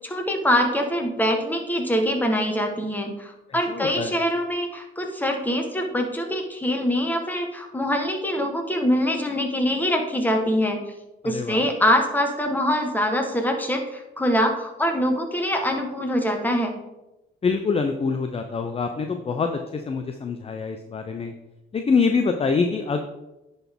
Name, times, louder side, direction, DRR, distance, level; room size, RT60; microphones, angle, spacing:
voice 1, 0.0-10.8 11.2-16.8, equal, 10° left, 3 dB, 1.3 m, -24 dB
voice 2, 3.7-4.1 11.2-11.7 17.4-21.3 21.7-23.0, left 5 dB, 30° left, 6 dB, 0.5 m, -25 dB
10.0 x 4.1 x 3.6 m, 0.97 s
cardioid pair, 90°, 20 cm